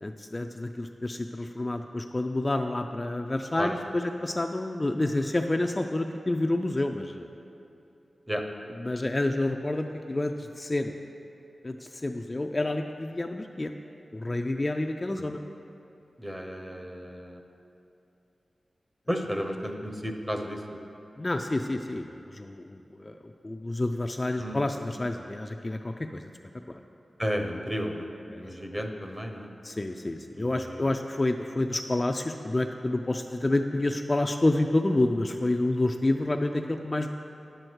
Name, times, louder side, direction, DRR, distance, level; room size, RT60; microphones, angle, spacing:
voice 1, 0.0-7.3 8.8-10.9 11.6-13.7 14.1-15.4 21.2-23.2 23.4-26.3 26.7-26.8 28.3-28.8 29.6-37.1, left 2 dB, 25° left, 4 dB, 0.3 m, -29 dB
voice 2, 16.2-17.4 19.1-20.6 24.4-24.6 27.2-28.1 28.4-29.5 30.4-30.8, equal, 15° right, 3 dB, 0.8 m, -33 dB
10.0 x 7.8 x 4.5 m, 2.7 s
wide cardioid pair, 105°, 0 cm